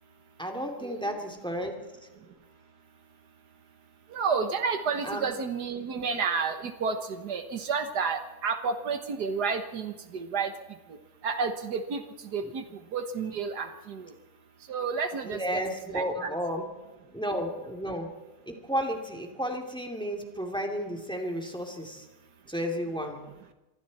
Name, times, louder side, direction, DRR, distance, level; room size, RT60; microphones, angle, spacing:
voice 1, 0.4-1.7 5.0-5.3 12.4-12.5 15.2-16.6 17.1-18.1 18.5-22.0 22.5-23.2, equal, 5° left, 2 dB, 2.8 m, -32 dB
voice 2, 4.1-10.5 11.2-12.0 12.3-12.6 12.9-14.1 14.7-15.4 15.9-16.3, right 5 dB, 75° right, 7 dB, 1.8 m, -30 dB
26.5 x 23.0 x 4.3 m, 1.1 s
omnidirectional pair, 1.7 m